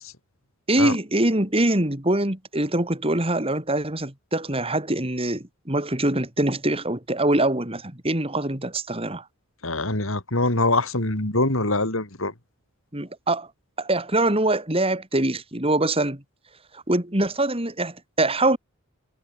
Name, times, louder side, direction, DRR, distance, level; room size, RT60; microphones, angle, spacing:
voice 1, 0.7-9.2 12.9-13.5 13.8-16.2 16.7-18.6, right 1 dB, 25° right, 2.8 m, -24 dB
voice 2, 9.6-12.3, left 2 dB, 60° left, 3.7 m, -24 dB
head